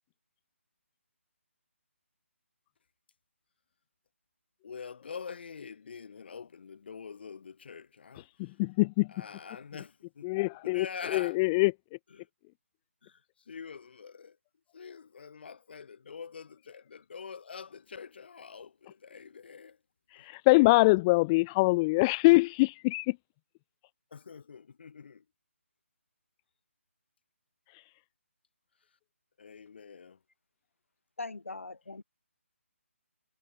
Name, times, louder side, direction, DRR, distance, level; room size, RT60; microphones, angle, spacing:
voice 1, 4.6-8.6 9.1-10.3 10.6-11.5 12.1-12.3 13.0-14.4 14.7-19.8 20.1-20.3 24.1-25.3 29.4-30.2, left 6 dB, 50° left, 3.6 m, -45 dB
voice 2, 8.4-9.1 10.2-11.7 20.1-23.2 27.7-27.9, left 24 dB, 20° left, 0.9 m, -24 dB
voice 3, 31.2-32.0, left 3 dB, 70° left, 4.2 m, -40 dB
figure-of-eight pair, 150°, 7 cm